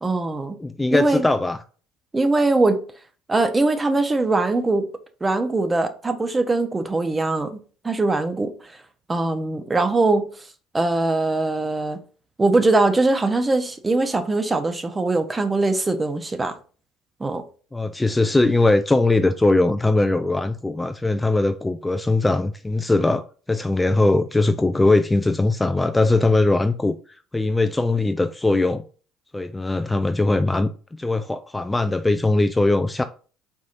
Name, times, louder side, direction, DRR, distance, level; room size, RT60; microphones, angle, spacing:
voice 1, 0.0-0.6 0.9-1.3 2.1-2.8 3.3-4.9 5.2-7.6 7.8-8.5 9.1-10.3 10.7-12.0 12.4-16.5 17.2-17.4, right 2 dB, 20° right, 0.8 m, -21 dB
voice 2, 0.6-1.6 17.7-27.0 27.3-28.8 29.3-30.7 31.0-33.0, left 2 dB, 15° left, 0.3 m, -20 dB
4.6 x 4.2 x 2.5 m
hypercardioid pair, 65°, 0 cm